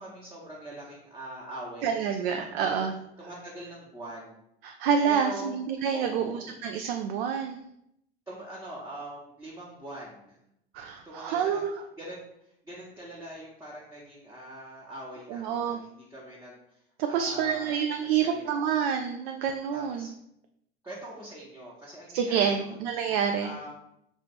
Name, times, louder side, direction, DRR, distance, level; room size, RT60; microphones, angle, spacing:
voice 1, 0.0-2.0 2.3-2.7 3.2-4.4 5.1-5.6 5.9-6.4 8.3-10.4 11.0-11.6 12.0-12.3 12.6-16.8 17.1-17.8 18.1-18.6 19.7-20.1 20.8-22.8 23.4-23.7, right 1 dB, 10° right, -7 dB, 1.0 m, -42 dB
voice 2, 1.8-2.9 4.6-7.6 10.7-11.7 15.3-15.8 17.0-20.1 22.1-23.6, right 7 dB, 65° right, 4 dB, 0.4 m, -28 dB
3.3 x 2.8 x 4.3 m, 0.79 s
figure-of-eight pair, 70°, 32 cm